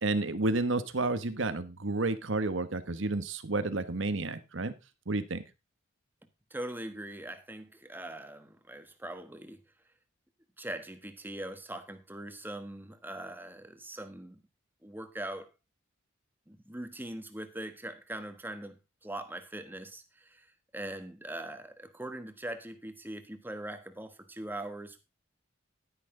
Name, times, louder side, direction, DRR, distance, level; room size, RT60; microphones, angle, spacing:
voice 1, 0.0-4.7 5.1-5.4, right 2 dB, 65° right, 1.3 m, -31 dB
voice 2, 6.5-9.6 10.6-14.4 14.8-15.5 16.5-25.0, right 1 dB, 10° right, 1.4 m, -41 dB
11.0 x 10.5 x 3.8 m
head